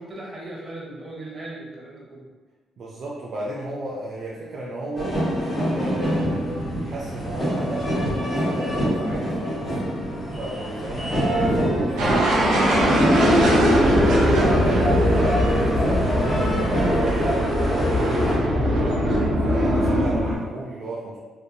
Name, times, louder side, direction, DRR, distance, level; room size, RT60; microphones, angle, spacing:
voice 1, 0.0-2.2, right 2 dB, 30° right, -4 dB, 0.9 m, -37 dB
voice 2, 2.8-5.2 5.7-9.8 10.4-19.1 19.4-21.2, right 1 dB, 55° right, -4 dB, 0.4 m, -34 dB
sound 1, 4.9-18.3, equal, 25° left, 1.4 m, -25 dB
sound 2, 12.0-20.4, equal, 90° right, 0.7 m, -20 dB
2.6 x 2.6 x 2.2 m, 1.4 s
cardioid pair, 90°, 0 cm